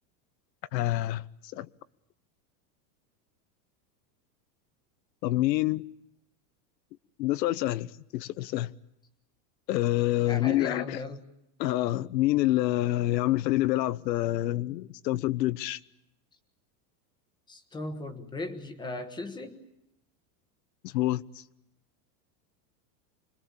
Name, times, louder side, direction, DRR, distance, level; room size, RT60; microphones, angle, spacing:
voice 1, 0.7-1.2 1.5-1.7 5.2-5.8 7.2-8.7 9.7-11.0 11.6-15.8 20.8-21.4, left 16 dB, 75° left, 1.0 m, -27 dB
voice 2, 10.2-11.3 17.5-19.6, left 2 dB, 10° left, 1.3 m, -37 dB
26.0 x 22.5 x 8.7 m
supercardioid pair, 175°, 50 cm